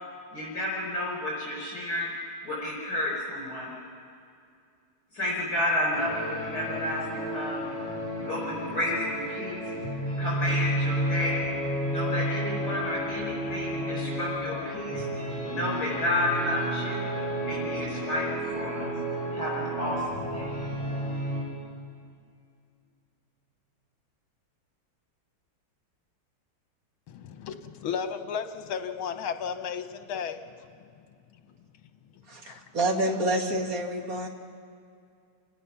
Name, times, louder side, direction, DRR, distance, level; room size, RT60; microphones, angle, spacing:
voice 1, 0.3-3.7 5.1-7.8 8.2-9.7 10.2-11.5 11.9-15.1 15.5-17.1 17.5-18.9 19.3-20.6, left 1 dB, 50° left, 5.3 m, -31 dB
sound 1, 5.9-21.4, right 1 dB, 60° right, 7.9 m, -31 dB
voice 2, 27.1-30.7 32.4-32.6, left 7 dB, 80° left, 1.9 m, -34 dB
voice 3, 32.3-34.3, right 1 dB, 45° right, 2.0 m, -28 dB
28.5 x 17.5 x 5.9 m
omnidirectional pair, 2.3 m